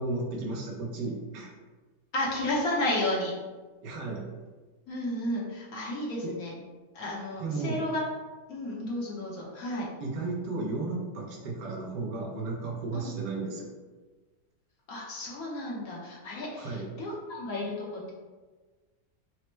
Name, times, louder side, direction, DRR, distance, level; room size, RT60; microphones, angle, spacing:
voice 1, 0.0-1.5 3.8-4.3 6.2-6.3 7.4-7.8 10.0-13.7 16.6-16.9, right 3 dB, 75° right, -1 dB, 1.4 m, -34 dB
voice 2, 2.1-3.3 4.9-6.5 6.9-8.0 8.5-9.9 12.9-13.1 14.9-18.1, left 1 dB, 60° left, -4 dB, 1.3 m, -32 dB
4.2 x 2.1 x 4.4 m, 1.3 s
omnidirectional pair, 1.9 m